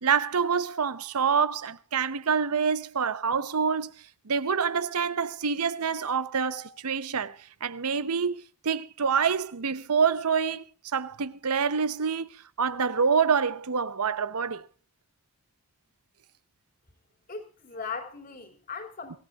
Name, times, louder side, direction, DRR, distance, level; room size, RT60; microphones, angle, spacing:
voice 1, 0.0-3.9 4.3-7.4 7.6-10.6 10.9-12.3 12.6-14.6, right 6 dB, 85° right, 0.9 m, -26 dB
voice 2, 17.3-19.2, left 5 dB, 40° left, 3.0 m, -38 dB
24.5 x 16.0 x 2.4 m
head